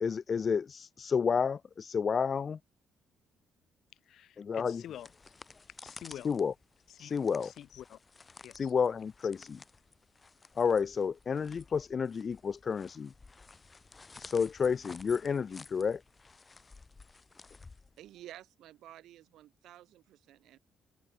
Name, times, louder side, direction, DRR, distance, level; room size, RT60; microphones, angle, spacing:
voice 1, 0.0-2.6 4.4-4.8 6.2-6.5 7.0-7.5 8.5-9.6 10.6-13.1 14.2-16.0, left 6 dB, 45° left, 0.4 m, -30 dB
voice 2, 3.9-5.3 5.7-6.3 6.9-7.1 7.4-8.0 8.4-8.7 9.2-9.3, left 11 dB, 70° left, 5.0 m, -48 dB
sound 1, 4.6-18.4, left 4 dB, 30° left, 6.0 m, -54 dB
voice 3, 18.0-20.6, right 13 dB, 80° right, 3.6 m, -52 dB
cardioid pair, 90°, 0 cm